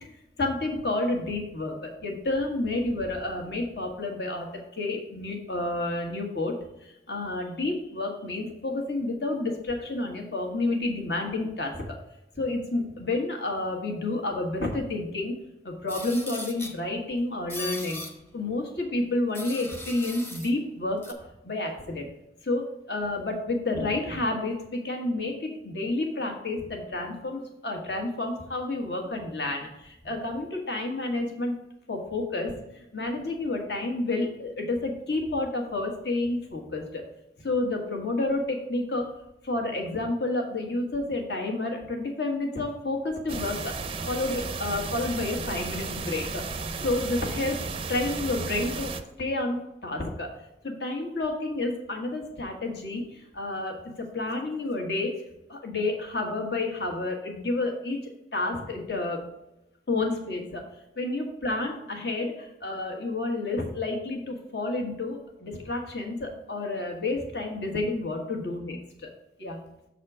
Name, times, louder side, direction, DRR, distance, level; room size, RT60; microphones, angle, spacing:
voice 1, 0.4-6.5 6.8-11.9 12.3-15.3 15.6-18.0 18.3-22.1 22.4-31.5 31.9-37.0 37.4-39.1 39.4-43.8 44.1-46.4 46.8-47.6 47.9-48.9 49.2-50.3 50.6-55.1 55.5-58.0 58.3-59.2 59.9-60.6 61.0-69.1 69.4-69.6, left 2 dB, 70° left, 2 dB, 1.6 m, -30 dB
sound 1, 15.9-16.8 17.5-18.1 19.3-20.5 21.0-21.1, left 1 dB, 10° left, 0.8 m, -38 dB
sound 2, 43.3-49.0, right 4 dB, 30° right, 0.5 m, -34 dB
6.6 x 4.2 x 6.1 m, 0.88 s
head